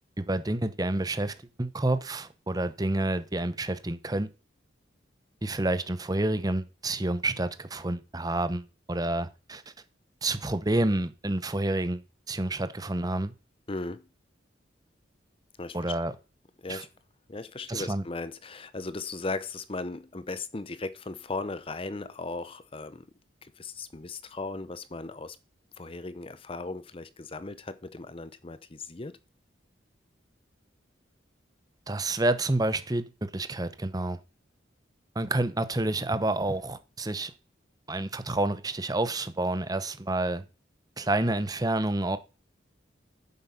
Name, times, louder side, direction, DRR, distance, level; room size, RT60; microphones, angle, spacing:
voice 1, 0.2-4.3 5.4-9.6 10.2-13.3 15.7-16.1 16.7-16.8 17.7-18.0 31.9-34.2 35.1-37.3 37.9-40.4 41.0-42.2, right 2 dB, 20° right, 0.9 m, -29 dB
voice 2, 13.7-14.0 15.6-16.0 16.6-16.9 17.3-23.1 23.4-25.4 25.8-29.2, left 3 dB, 30° left, 0.7 m, -37 dB
9.6 x 7.6 x 5.8 m
head